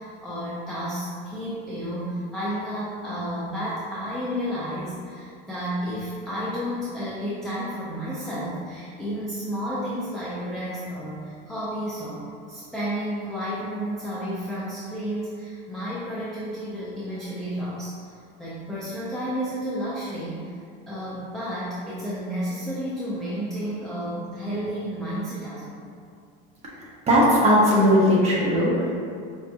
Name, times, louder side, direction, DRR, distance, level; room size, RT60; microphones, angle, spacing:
voice 1, 0.0-18.1 18.4-20.6 20.9-25.8, equal, ahead, -10 dB, 0.3 m, -31 dB
voice 2, 27.1-28.9, equal, 25° right, -5 dB, 0.7 m, -18 dB
4.8 x 2.2 x 2.7 m, 2.3 s
supercardioid pair, 145°, 29 cm